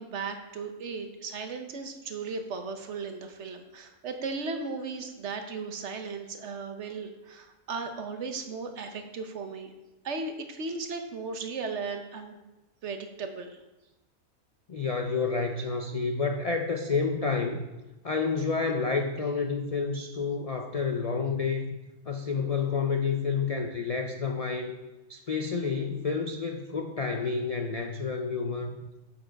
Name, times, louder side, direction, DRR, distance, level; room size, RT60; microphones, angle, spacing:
voice 1, 0.0-9.7 10.0-12.4 12.8-13.6, right 4 dB, 60° right, 6 dB, 1.1 m, -36 dB
voice 2, 14.7-17.7 18.0-21.8 22.1-24.8 25.1-28.8, left 4 dB, 55° left, 4 dB, 0.4 m, -29 dB
7.8 x 7.0 x 4.5 m, 1.1 s
omnidirectional pair, 1.4 m